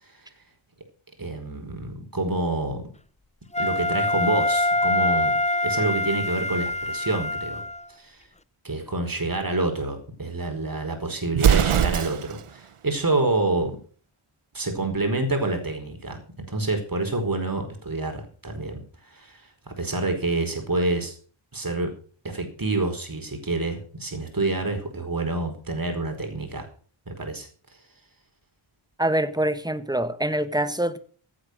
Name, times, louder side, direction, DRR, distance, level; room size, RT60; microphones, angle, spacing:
voice 1, 1.2-2.8 3.6-5.3 5.6-7.6 7.9-8.2 8.6-13.8 14.5-18.8 19.1-21.1 21.5-21.9 22.2-26.7 27.1-27.5, right 2 dB, 45° right, 5 dB, 4.7 m, -27 dB
Wind instrument woodwind instrument, 3.5-7.8, left 2 dB, 15° left, 0.6 m, -25 dB
Explosion, 11.3-12.5, right 9 dB, 85° right, 0.9 m, -21 dB
voice 2, 29.0-31.0, right 1 dB, 10° right, 11 dB, 1.5 m, -25 dB
16.0 x 8.7 x 6.7 m, 0.43 s
wide cardioid pair, 75°, 49 cm